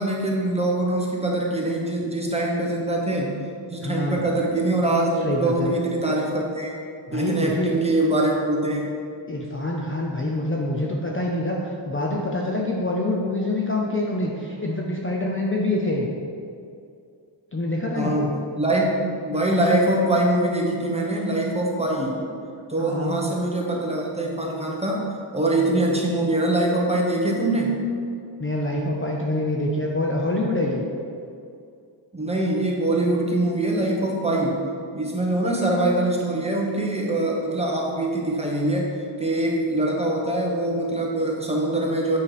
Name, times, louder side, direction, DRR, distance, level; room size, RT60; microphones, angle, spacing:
voice 1, 0.0-3.4 3.7-6.7 7.1-9.0 17.9-22.2 22.7-25.1 25.3-27.8 32.1-34.7 34.9-42.2, right 1 dB, 15° right, -2 dB, 1.0 m, -23 dB
voice 2, 3.8-4.2 5.2-5.7 7.1-7.8 9.3-16.1 17.5-18.3 22.0-22.1 22.8-23.2 28.4-30.8, left 1 dB, 25° left, -2 dB, 0.6 m, -26 dB
8.4 x 4.7 x 4.9 m, 2.4 s
wide cardioid pair, 170°, 48 cm